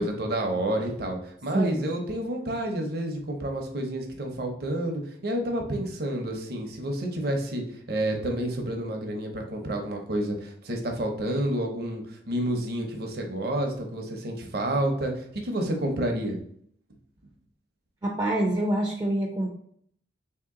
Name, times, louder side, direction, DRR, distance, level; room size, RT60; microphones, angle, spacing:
voice 1, 0.0-16.4, right 1 dB, 55° right, 2 dB, 0.7 m, -29 dB
voice 2, 18.0-19.6, right 1 dB, 20° right, 0 dB, 0.4 m, -26 dB
3.0 x 2.8 x 3.6 m, 0.65 s
head